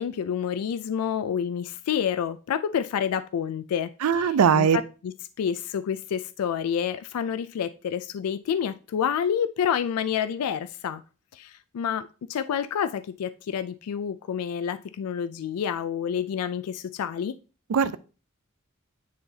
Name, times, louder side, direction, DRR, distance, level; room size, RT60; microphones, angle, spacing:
voice 1, 0.0-11.0 11.3-17.3, left 8 dB, 90° left, 0.3 m, -29 dB
voice 2, 4.0-4.8 17.7-18.0, right 7 dB, 80° right, 0.4 m, -20 dB
9.5 x 3.9 x 2.7 m
head